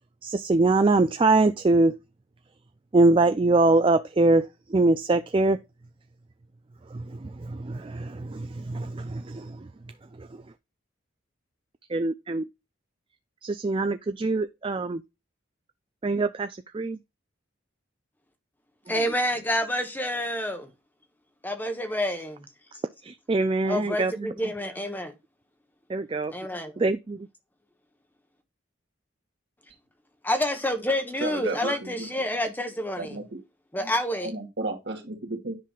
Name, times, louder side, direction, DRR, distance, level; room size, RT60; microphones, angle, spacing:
voice 1, 0.2-1.9 2.9-4.5 4.7-5.6 6.9-7.0 7.5-9.5 11.9-12.5 13.4-15.0 16.0-17.0 23.0-24.1 25.9-26.3 26.8-27.2, right 2 dB, 25° right, 0.4 m, -23 dB
voice 2, 18.9-20.7 21.4-22.4 23.7-25.1 26.3-26.7 30.2-33.2 33.7-34.3, left 1 dB, 10° left, 1.0 m, -28 dB
voice 3, 31.2-32.1 33.0-33.4 34.2-35.5, right 2 dB, 55° right, 2.0 m, -33 dB
10.0 x 5.8 x 2.4 m
head